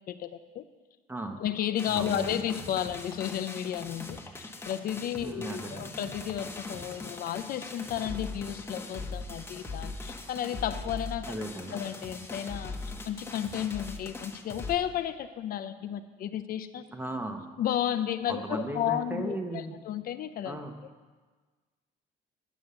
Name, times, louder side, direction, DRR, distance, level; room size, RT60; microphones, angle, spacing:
voice 1, 0.1-0.6 1.4-11.4 11.7-16.8 17.6-20.6, left 10 dB, 60° left, 10 dB, 0.5 m, -33 dB
voice 2, 1.1-1.4 1.9-2.4 5.2-5.9 11.3-11.8 16.9-17.4 18.3-19.8 20.4-20.8, right 1 dB, 10° right, 5 dB, 1.0 m, -36 dB
sound 1, 1.8-14.8, left 3 dB, 15° left, 1.1 m, -40 dB
9.4 x 7.0 x 6.8 m, 1.4 s
cardioid pair, 110°, 17 cm